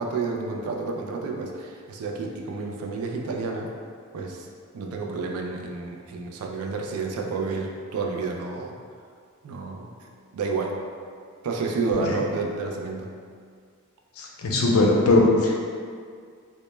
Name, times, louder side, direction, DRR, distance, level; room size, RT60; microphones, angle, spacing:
voice 1, 0.0-3.7 4.1-4.5 4.7-8.8 9.4-10.8 11.4-13.1, right 4 dB, 85° right, 1 dB, 0.3 m, -30 dB
voice 2, 14.2-15.6, left 2 dB, 85° left, -1 dB, 0.4 m, -19 dB
2.1 x 2.1 x 3.0 m, 2.1 s
head